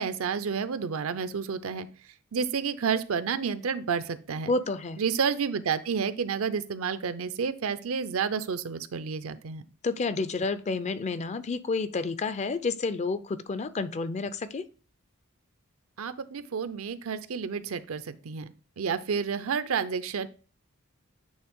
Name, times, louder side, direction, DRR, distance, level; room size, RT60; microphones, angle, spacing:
voice 1, 0.0-1.9 2.3-4.5 5.0-9.6 16.0-20.3, right 6 dB, 70° right, 13 dB, 0.5 m, -30 dB
voice 2, 4.5-5.0 9.8-14.7, left 3 dB, 30° left, 13 dB, 0.4 m, -30 dB
8.7 x 3.2 x 3.6 m, 0.38 s
head